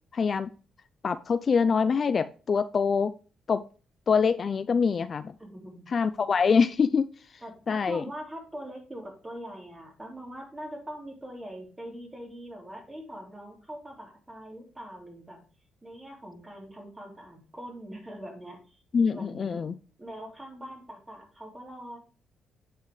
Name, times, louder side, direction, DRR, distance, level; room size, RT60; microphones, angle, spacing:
voice 1, 0.1-0.5 1.0-3.1 3.5-3.6 4.1-5.3 5.9-7.1 7.7-8.0 18.9-19.7, left 5 dB, 45° left, 13 dB, 0.4 m, -24 dB
voice 2, 5.4-5.8 7.4-15.4 15.8-18.8 19.1-19.6 20.0-22.0, equal, 15° right, 1 dB, 3.2 m, -42 dB
8.9 x 5.5 x 3.1 m, 0.37 s
cardioid pair, 90°, 0 cm